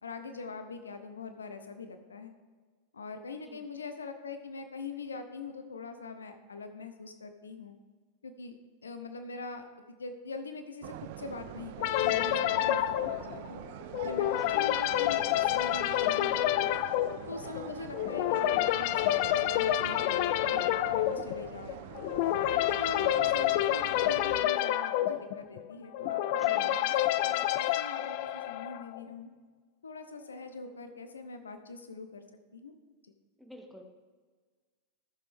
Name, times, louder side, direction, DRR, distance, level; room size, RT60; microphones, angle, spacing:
voice 1, 0.0-2.3 2.9-7.8 8.2-8.6 8.8-13.6 14.0-16.8 17.3-21.8 22.8-26.9 27.2-29.3 29.8-32.2 32.5-32.7 33.0-33.1, left 4 dB, 70° left, 8 dB, 0.7 m, -43 dB
sound 1, 10.8-24.4, right 11 dB, 50° right, 0.5 m, -45 dB
sound 2, 11.8-29.0, left 13 dB, 45° left, 0.4 m, -28 dB
voice 2, 26.3-26.8 33.4-33.8, equal, ahead, 3 dB, 1.2 m, -50 dB
14.5 x 6.8 x 3.6 m, 1.5 s
figure-of-eight pair, 90°, 0 cm